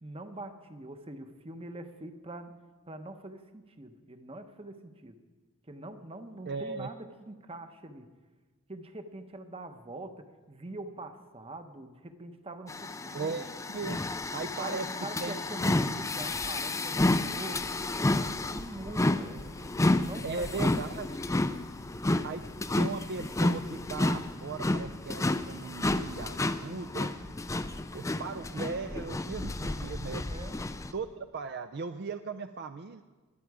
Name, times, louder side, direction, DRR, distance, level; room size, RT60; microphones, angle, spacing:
voice 1, 0.0-2.5 2.9-5.2 5.7-8.1 8.7-10.2 10.5-13.4 14.4-17.8 18.2-20.7 21.1-21.2 30.3-30.6, right 2 dB, 25° right, 8 dB, 0.9 m, -44 dB
voice 2, 6.5-6.9 13.1-14.0 14.3-14.9 15.2-15.4 20.2-21.1 22.2-22.4 22.8-27.1 27.9-30.2 30.9-33.0, right 4 dB, 50° right, 8 dB, 0.4 m, -38 dB
sound 1, 12.7-30.9, left 2 dB, 15° left, 0.4 m, -31 dB
sound 2, 19.1-24.4, left 2 dB, 65° left, 1.1 m, -51 dB
21.0 x 9.4 x 4.8 m, 1.3 s
head